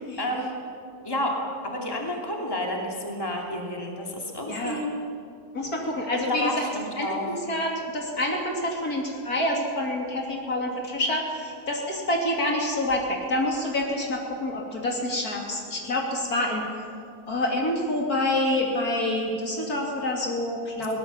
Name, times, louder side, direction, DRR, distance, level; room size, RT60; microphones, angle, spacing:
voice 1, 0.2-0.5 1.0-1.4 1.6-4.9 6.1-7.3 20.8-20.9, left 1 dB, 15° left, -1 dB, 2.9 m, -30 dB
voice 2, 4.5-4.8 5.5-6.7 7.0-16.7 17.3-21.0, left 1 dB, 65° left, 0 dB, 3.3 m, -27 dB
23.0 x 18.5 x 7.2 m, 2.4 s
omnidirectional pair, 1.8 m